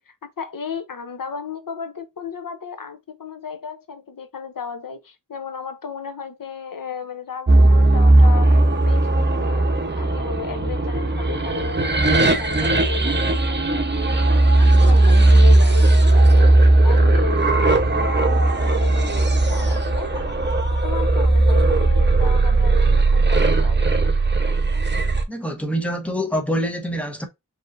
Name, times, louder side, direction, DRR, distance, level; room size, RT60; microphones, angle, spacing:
voice 1, 0.1-9.7 10.0-13.9 14.2-20.3 20.8-24.1, left 6 dB, 90° left, 0.9 m, -35 dB
sound 1, 7.5-25.2, right 2 dB, 35° right, 0.9 m, -17 dB
voice 2, 25.3-27.3, equal, 5° left, 1.0 m, -25 dB
5.0 x 3.0 x 2.5 m
wide cardioid pair, 65°, 32 cm